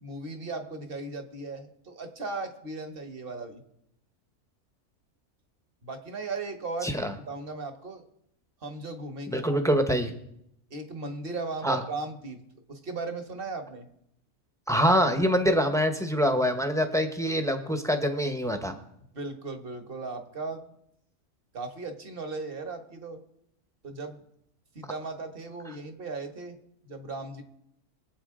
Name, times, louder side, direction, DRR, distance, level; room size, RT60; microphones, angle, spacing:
voice 1, 0.0-3.6 5.8-8.0 8.6-9.6 10.7-12.4 12.7-13.9 19.1-20.6 21.5-23.2 23.8-24.2 24.7-26.6 26.8-27.4, right 3 dB, 40° right, 6 dB, 1.4 m, -37 dB
voice 2, 6.8-7.1 9.3-10.1 11.6-11.8 14.7-18.7, equal, 5° left, 6 dB, 0.8 m, -25 dB
23.0 x 8.2 x 3.7 m, 0.77 s
omnidirectional pair, 1.6 m